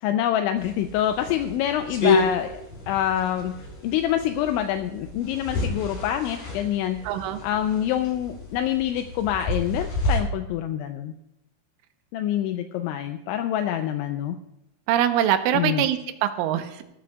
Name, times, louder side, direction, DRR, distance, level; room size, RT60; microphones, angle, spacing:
voice 1, 0.0-7.1 7.4-11.1 12.1-14.4 15.5-15.8, left 11 dB, 85° left, 6 dB, 2.8 m, -26 dB
sound 1, 0.6-10.2, left 3 dB, 40° left, 5.9 m, -30 dB
voice 2, 7.0-7.4 14.9-16.8, right 11 dB, 85° right, 7 dB, 3.3 m, -23 dB
18.5 x 13.5 x 2.4 m, 0.88 s
omnidirectional pair, 5.7 m